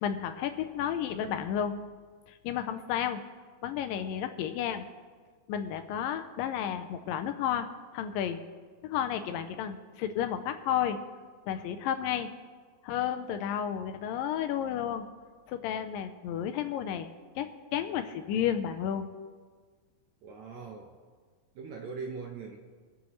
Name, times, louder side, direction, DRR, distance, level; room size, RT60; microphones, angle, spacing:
voice 1, 0.0-1.8 2.3-3.2 3.6-4.9 5.5-7.7 7.9-8.4 8.8-11.0 11.5-12.3 12.8-15.1 15.5-17.1 17.4-19.1, left 9 dB, 80° left, 8 dB, 2.2 m, -32 dB
voice 2, 20.2-20.9 21.5-22.6, right 4 dB, 70° right, 2 dB, 1.8 m, -41 dB
25.0 x 8.3 x 3.1 m, 1.5 s
omnidirectional pair, 4.1 m